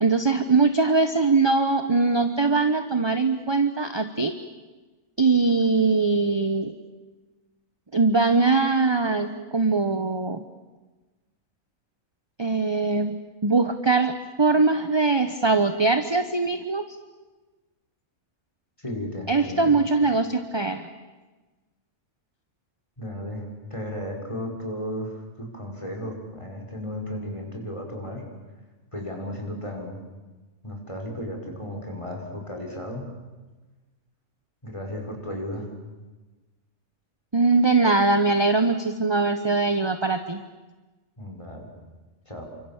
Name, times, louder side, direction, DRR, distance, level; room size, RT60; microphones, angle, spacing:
voice 1, 0.0-4.3 5.2-6.7 7.9-10.4 12.4-13.1 13.4-16.8 19.3-20.9 37.3-40.4, right 3 dB, 20° right, 9 dB, 1.0 m, -21 dB
voice 2, 18.8-19.8 23.0-23.4 23.7-28.2 28.9-30.0 30.6-33.1 34.6-35.7 41.2-41.7 42.3-42.5, left 1 dB, 20° left, 0 dB, 5.4 m, -34 dB
29.0 x 25.0 x 7.4 m, 1.2 s
omnidirectional pair, 1.5 m